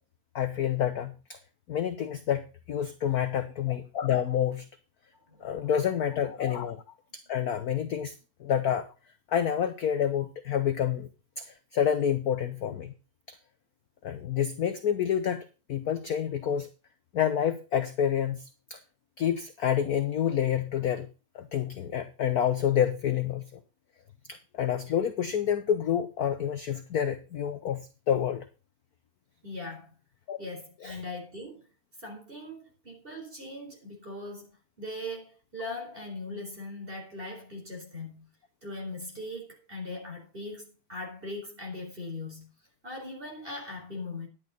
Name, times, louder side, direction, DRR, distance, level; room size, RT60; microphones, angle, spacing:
voice 1, 0.3-1.4 1.7-4.7 5.4-6.8 7.1-8.1 8.4-8.9 9.3-11.1 11.4-12.9 13.3-13.4 14.0-16.7 17.1-18.4 18.7-18.8 19.2-21.1 21.3-23.4 24.3-28.4 30.3-30.4 30.8-31.0, left 9 dB, 60° left, 1.1 m, -28 dB
voice 2, 5.3-5.7 29.4-29.9 30.4-31.6 32.0-38.3 38.6-42.5 42.8-44.3, left 2 dB, 25° right, 4.3 m, -40 dB
10.5 x 9.4 x 4.0 m
omnidirectional pair, 2.4 m